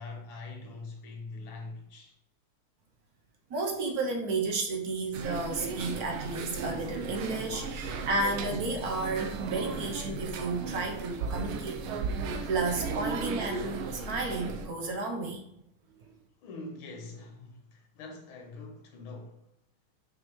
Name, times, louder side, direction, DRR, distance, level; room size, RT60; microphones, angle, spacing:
voice 1, 0.0-2.1 16.4-19.4, left 3 dB, 70° left, 1.9 m, -43 dB
voice 2, 3.5-11.8 12.1-15.4, right 3 dB, 65° right, 1.0 m, -32 dB
sound 1, 5.1-14.7, right 4 dB, 85° right, 1.5 m, -35 dB
5.7 x 5.3 x 3.1 m
omnidirectional pair, 2.3 m